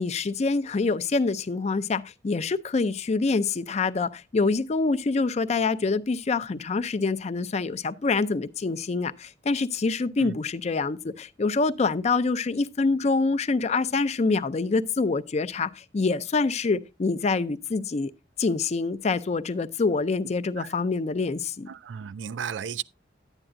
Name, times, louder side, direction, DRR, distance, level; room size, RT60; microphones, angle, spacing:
voice 1, 0.0-18.1 18.4-21.7, left 3 dB, 40° left, 0.4 m, -26 dB
voice 2, 21.7-22.8, right 7 dB, 85° right, 0.4 m, -34 dB
10.5 x 8.9 x 2.5 m
head